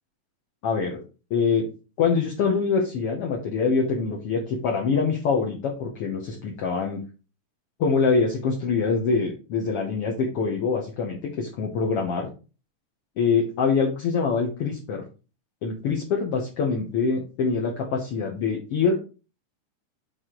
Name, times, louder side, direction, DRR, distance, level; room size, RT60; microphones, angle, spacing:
voice 1, 0.6-1.0 1.3-1.7 2.0-7.0 7.8-12.3 13.2-15.0 15.6-19.0, left 5 dB, 60° left, -1 dB, 1.7 m, -24 dB
6.4 x 4.3 x 3.8 m, 0.33 s
omnidirectional pair, 3.5 m